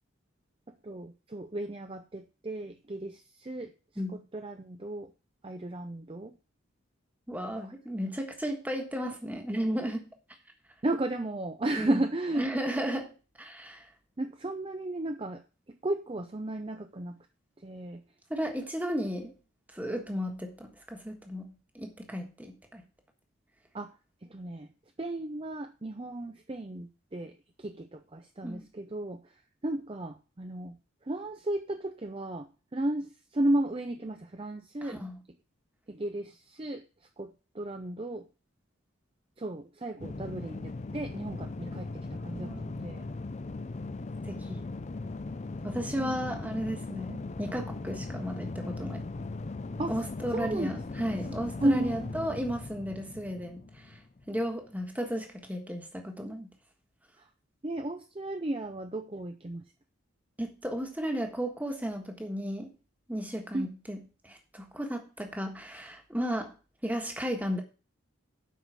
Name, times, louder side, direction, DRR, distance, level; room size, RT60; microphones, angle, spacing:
voice 1, 0.8-3.7 4.3-5.1 5.4-6.3 10.8-12.5 14.2-15.4 15.7-17.2 17.6-18.0 23.7-23.9 24.3-24.7 25.0-29.2 29.6-30.8 31.1-35.0 35.9-36.8 37.2-38.3 39.4-43.1 46.0-46.1 49.8-49.9 50.3-50.8 51.6-52.1 57.6-59.6 63.5-63.7, right 1 dB, 25° right, 7 dB, 0.5 m, -34 dB
voice 2, 7.3-10.1 11.8-12.0 12.4-13.1 13.4-13.9 18.3-19.3 19.7-22.8 28.4-28.7 34.8-35.2 42.3-42.7 44.2-44.6 45.6-49.1 49.9-54.0 54.3-56.5 60.4-62.7 63.1-66.5 66.8-67.6, equal, 10° right, 3 dB, 1.4 m, -34 dB
sound 1, 40.0-54.4, left 3 dB, 35° left, 0.4 m, -39 dB
8.3 x 5.7 x 7.3 m, 0.35 s
head